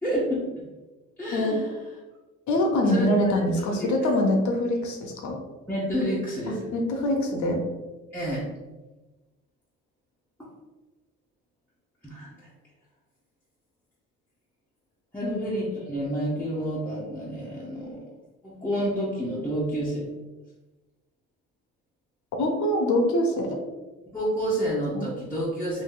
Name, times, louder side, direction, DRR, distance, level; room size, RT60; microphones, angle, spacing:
voice 1, 0.0-0.5 1.2-1.7 2.8-3.3 5.7-6.7 8.1-8.5 10.4-10.5 12.0-12.5 15.1-18.0 18.4-20.1 24.1-25.8, equal, 5° left, -9 dB, 0.8 m, -29 dB
voice 2, 2.5-5.4 6.5-7.6 15.2-15.3 22.4-23.6 24.9-25.0, left 1 dB, 70° left, 2 dB, 0.8 m, -24 dB
2.7 x 2.6 x 3.7 m, 1.2 s
cardioid pair, 90°, 30 cm